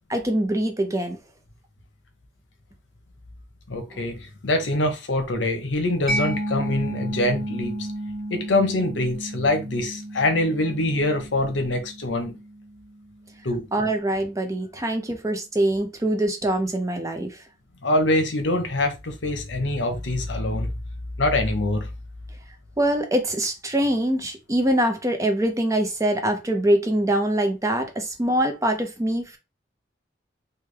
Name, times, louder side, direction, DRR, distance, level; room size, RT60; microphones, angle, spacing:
voice 1, 0.1-1.2 3.9-4.0 13.7-17.4 22.8-29.4, right 1 dB, 15° right, 0.6 m, -24 dB
voice 2, 3.7-7.9 8.3-12.4 13.4-13.7 17.8-20.7 21.2-21.9, left 1 dB, 80° left, 0.8 m, -24 dB
Mallet percussion, 6.1-13.5, right 1 dB, ahead, 1.1 m, -32 dB
3.3 x 2.2 x 3.3 m
head